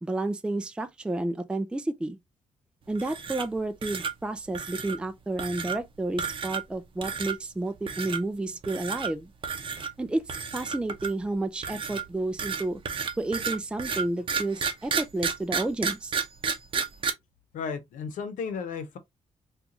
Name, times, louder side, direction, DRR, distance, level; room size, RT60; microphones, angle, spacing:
voice 1, 0.0-2.2 2.9-9.3 10.0-12.8 13.2-16.2, right 2 dB, 10° right, 0.4 m, -31 dB
sound 1, 3.0-3.6 3.8-4.1 4.5-5.0 5.4-5.8 6.2-6.7 7.0-7.4 7.9-8.2 8.6-9.1 9.4-9.9 10.3-11.2 11.6-17.1, right 6 dB, 40° right, 0.7 m, -31 dB
voice 2, 17.5-19.0, left 5 dB, 90° left, 0.8 m, -34 dB
3.8 x 2.4 x 2.8 m
cardioid pair, 115°, 13 cm